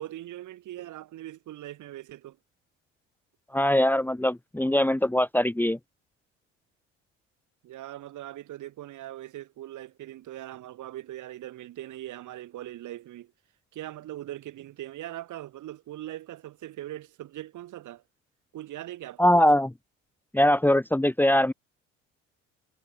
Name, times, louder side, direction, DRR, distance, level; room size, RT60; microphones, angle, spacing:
voice 1, 0.0-2.4 7.6-13.3 13.7-18.0 18.5-19.4, right 14 dB, 55° right, 6.6 m, -40 dB
voice 2, 3.5-5.8 19.2-19.7 20.3-21.5, left 1 dB, 5° left, 2.0 m, -22 dB
figure-of-eight pair, 60°, 37 cm